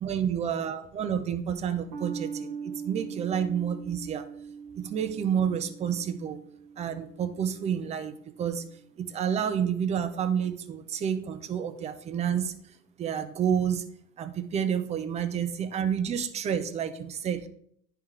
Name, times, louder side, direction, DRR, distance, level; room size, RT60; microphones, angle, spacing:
voice 1, 0.0-4.3 4.7-6.4 6.8-8.6 9.0-12.5 13.0-13.8 14.2-17.5, right 8 dB, 15° right, 8 dB, 0.3 m, -29 dB
sound 1, 1.9-8.7, right 6 dB, 45° right, 1.2 m, -41 dB
10.0 x 3.4 x 3.5 m, 0.66 s
hypercardioid pair, 105°, 49 cm